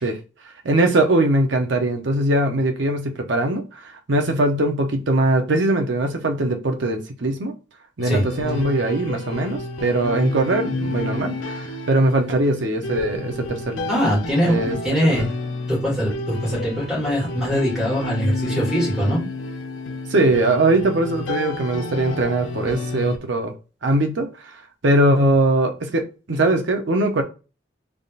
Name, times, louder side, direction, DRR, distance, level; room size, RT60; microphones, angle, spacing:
voice 1, 0.6-7.5 8.0-13.9 14.4-15.2 20.1-23.5 23.8-24.5 24.8-27.2, right 1 dB, 70° right, 0.7 m, -21 dB
sound 1, 8.0-23.2, left 2 dB, 85° left, 0.6 m, -30 dB
voice 2, 13.9-15.3 15.7-19.2, equal, 5° right, 2.2 m, -22 dB
4.0 x 3.4 x 2.4 m
head